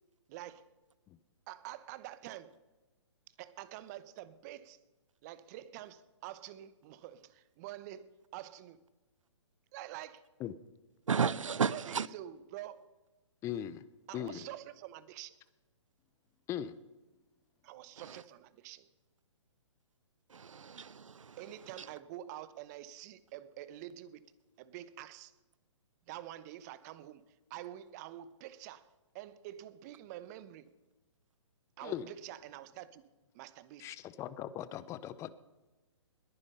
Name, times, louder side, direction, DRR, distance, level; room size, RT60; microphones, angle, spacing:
voice 1, 0.3-0.7 1.5-2.6 3.3-4.8 5.2-8.8 9.7-10.3 11.7-12.9 14.1-15.4 17.6-18.9 21.4-24.2 24.6-25.3 26.1-27.2 27.5-28.9 29.1-30.7 31.8-33.0 33.3-34.0, right 13 dB, 35° right, 0.8 m, -47 dB
voice 2, 11.1-12.1 18.0-18.2 20.3-21.9, right 6 dB, 85° right, 0.6 m, -34 dB
voice 3, 13.4-13.8 14.1-14.4 16.5-16.8 31.8-32.1 33.8-35.3, left 10 dB, 20° left, 0.5 m, -39 dB
20.5 x 9.9 x 5.5 m
hypercardioid pair, 135°, 16 cm